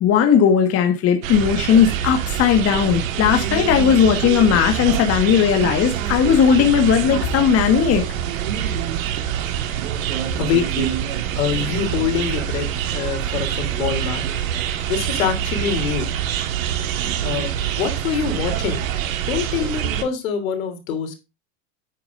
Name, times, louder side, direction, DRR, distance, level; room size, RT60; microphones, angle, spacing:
voice 1, 0.0-8.0, left 7 dB, 35° left, 1.6 m, -17 dB
sound 1, 1.2-20.0, right 10 dB, 75° right, 1.8 m, -25 dB
voice 2, 10.4-10.9 11.2-14.2 14.8-16.1 17.2-17.5 17.8-18.9 19.3-21.2, left 7 dB, 80° left, 3.4 m, -25 dB
9.5 x 9.2 x 2.6 m
supercardioid pair, 125°, 40 cm